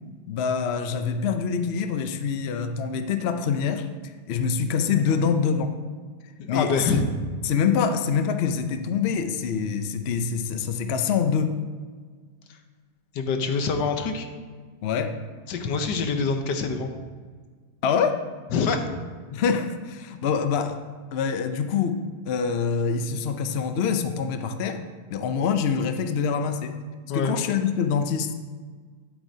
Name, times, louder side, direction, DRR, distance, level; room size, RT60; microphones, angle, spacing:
voice 1, 0.3-5.7 6.5-6.9 7.4-11.6 14.8-15.1 17.8-18.2 19.3-20.8 21.1-24.8 25.1-26.7 27.1-28.3, left 6 dB, 60° left, 7 dB, 0.6 m, -25 dB
voice 2, 6.4-7.0 13.1-14.3 15.5-16.9 18.5-18.9 27.1-27.3, left 4 dB, 80° left, 6 dB, 1.5 m, -25 dB
12.0 x 8.4 x 2.8 m, 1.6 s
omnidirectional pair, 1.8 m